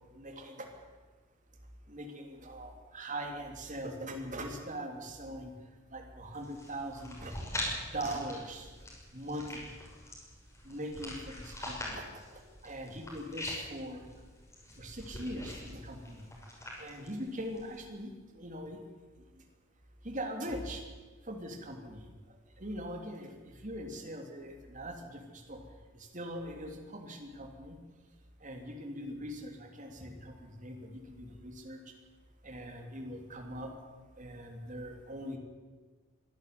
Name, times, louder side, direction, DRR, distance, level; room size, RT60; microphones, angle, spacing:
voice 1, 0.1-0.7 1.9-5.5 5.9-7.3 7.7-8.7 9.1-9.7 10.6-14.0 14.8-16.3 16.8-18.8 20.0-20.8 21.2-22.0 22.6-25.6 25.9-27.8 28.4-31.8 32.4-33.7 34.2-35.4, right 1 dB, 40° right, 3 dB, 3.2 m, -41 dB
sound 1, 6.3-17.8, left 1 dB, 15° left, 6.3 m, -43 dB
24.0 x 12.0 x 9.5 m, 1.3 s
head